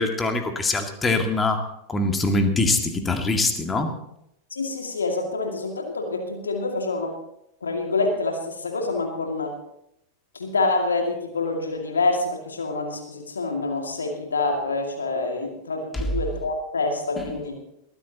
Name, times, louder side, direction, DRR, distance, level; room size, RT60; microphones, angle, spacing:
voice 1, 0.0-1.6 1.9-3.9 15.9-16.0, left 2 dB, 15° left, 5 dB, 2.1 m, -23 dB
voice 2, 4.5-7.2 7.6-9.6 10.3-17.6, left 3 dB, 75° left, 2 dB, 2.3 m, -26 dB
21.5 x 15.0 x 2.9 m, 0.78 s
figure-of-eight pair, 90°, 0 cm